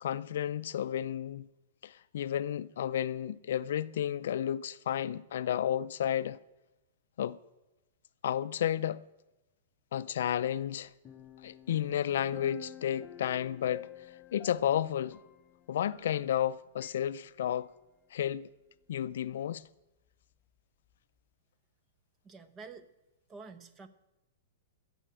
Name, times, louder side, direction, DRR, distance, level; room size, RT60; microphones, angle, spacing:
voice 1, 0.0-1.5 1.8-6.4 7.2-7.4 8.2-9.0 9.9-10.9 11.4-13.9 14.3-15.2 15.7-17.7 18.1-18.5 18.9-19.6, left 10 dB, 70° left, 0.4 m, -32 dB
sound 1, 11.0-16.5 16.8-17.0, left 10 dB, 25° left, 0.9 m, -50 dB
voice 2, 22.2-22.9 23.3-23.9, right 4 dB, 25° right, 1.0 m, -48 dB
15.0 x 7.1 x 8.8 m
hypercardioid pair, 130°, 0 cm